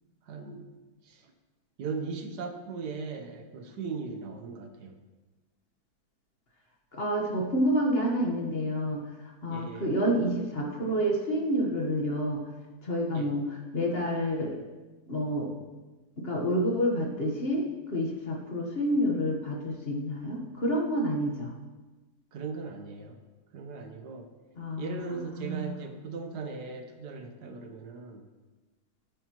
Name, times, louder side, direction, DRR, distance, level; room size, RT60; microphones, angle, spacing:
voice 1, 0.2-0.7 1.0-1.3 1.8-5.0 9.5-9.9 13.1-13.3 22.3-23.2 23.5-24.3 24.8-28.2, right 4 dB, 80° right, 5 dB, 1.5 m, -38 dB
voice 2, 6.9-9.0 9.4-12.4 12.8-13.4 13.7-14.6 15.1-15.5 16.2-17.6 17.9-21.5 24.6-25.8, equal, 40° left, 0 dB, 1.3 m, -28 dB
12.0 x 9.1 x 3.0 m, 1.2 s
omnidirectional pair, 1.7 m